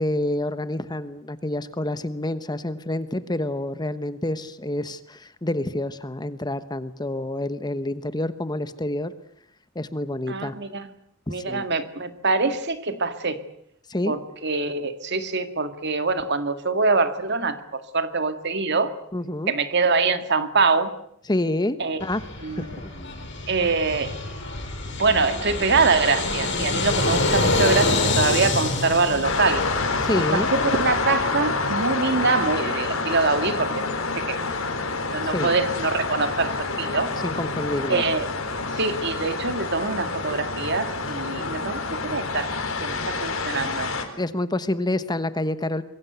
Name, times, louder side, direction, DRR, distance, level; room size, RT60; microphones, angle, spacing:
voice 1, 0.0-9.1 9.7-10.6 11.3-11.7 13.9-14.1 19.1-19.5 21.3-22.9 30.0-30.5 35.2-35.5 37.2-38.0 44.2-45.8, left 1 dB, 20° left, 12 dB, 1.1 m, -28 dB
voice 2, 10.3-10.9 11.3-13.4 14.1-18.9 19.5-20.9 21.8-22.1 22.4-22.7 23.5-24.2 24.9-29.6 30.2-33.8 34.2-34.4 35.1-37.1 37.9-38.3 38.7-42.5 42.8-43.9, right 4 dB, 55° right, 9 dB, 2.1 m, -24 dB
Fixed-wing aircraft airplane, 22.0-31.3, left 3 dB, 60° left, 6.0 m, -26 dB
sound 1, 29.2-44.0, left 3 dB, 90° left, 4.2 m, -27 dB
25.5 x 22.0 x 8.2 m, 0.71 s
head